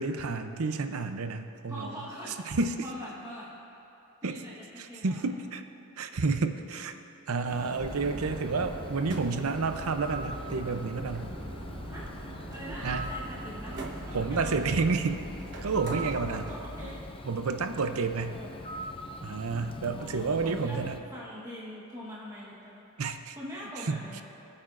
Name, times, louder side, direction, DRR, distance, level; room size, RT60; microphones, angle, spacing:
voice 1, 0.0-2.0 2.5-2.8 4.2-4.4 4.8-5.6 6.0-6.9 7.3-11.3 12.8-13.1 14.1-15.2 15.6-16.5 17.2-18.4 19.2-21.0 23.0-23.4 23.8-24.0, right 4 dB, 80° right, 8 dB, 0.6 m, -30 dB
voice 2, 1.7-3.5 4.2-5.2 7.3-7.6 11.9-12.1 12.5-14.6 16.1-17.1 17.7-18.5 19.9-20.8 21.1-22.9 23.4-24.2, equal, 15° right, -6 dB, 1.3 m, -43 dB
Bird, 7.5-21.0, left 1 dB, 25° left, 0.5 m, -43 dB
sound 1, 7.8-17.0, right 1 dB, 55° right, 1.1 m, -40 dB
22.0 x 8.7 x 2.5 m, 2.8 s
head